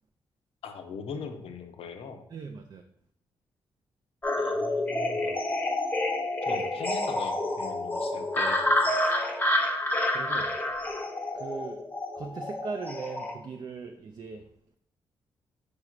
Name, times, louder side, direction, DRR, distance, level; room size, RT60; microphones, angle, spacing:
voice 1, 0.6-2.2 4.4-5.4 6.5-8.6, left 5 dB, 75° left, 6 dB, 0.5 m, -40 dB
voice 2, 2.3-2.8 6.4-6.7 10.1-10.5 11.3-11.8 12.2-14.5, right 4 dB, 45° right, 4 dB, 0.3 m, -39 dB
sound 1, 4.2-13.3, left 1 dB, 20° left, 0.7 m, -28 dB
4.8 x 3.1 x 2.4 m, 0.70 s
cardioid pair, 60°, 10 cm